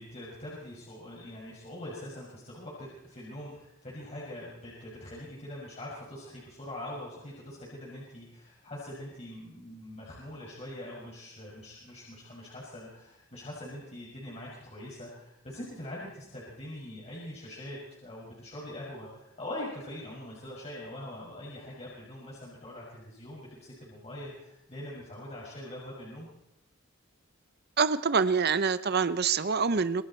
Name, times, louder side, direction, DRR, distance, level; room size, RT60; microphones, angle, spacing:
voice 1, 0.0-26.3, left 1 dB, 35° left, -5 dB, 6.5 m, -43 dB
voice 2, 27.8-30.0, right 5 dB, 55° right, 14 dB, 0.8 m, -26 dB
26.5 x 22.5 x 4.5 m, 0.84 s
head